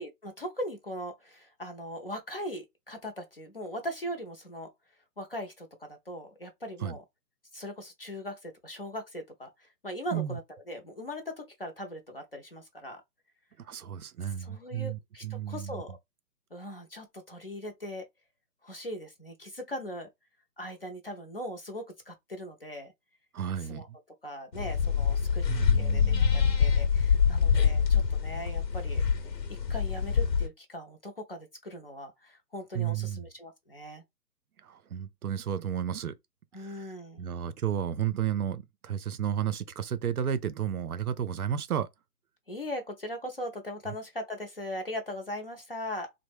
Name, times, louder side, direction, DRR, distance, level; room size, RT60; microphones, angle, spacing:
voice 1, 0.0-4.7 5.2-7.0 7.5-10.4 10.7-13.0 14.4-16.0 16.5-18.1 18.6-20.1 20.6-22.9 23.7-23.9 24.2-29.0 29.5-34.0 36.5-37.3 42.5-46.1, equal, 40° left, 0.5 m, -40 dB
voice 2, 13.6-15.8 23.3-24.0 25.5-26.8 32.7-33.3 34.6-36.2 36.5-41.9 43.9-44.0, right 9 dB, 65° right, 0.5 m, -33 dB
sound 1, 24.5-30.5, left 6 dB, 85° left, 0.9 m, -25 dB
3.0 x 2.1 x 3.3 m
hypercardioid pair, 155°, 49 cm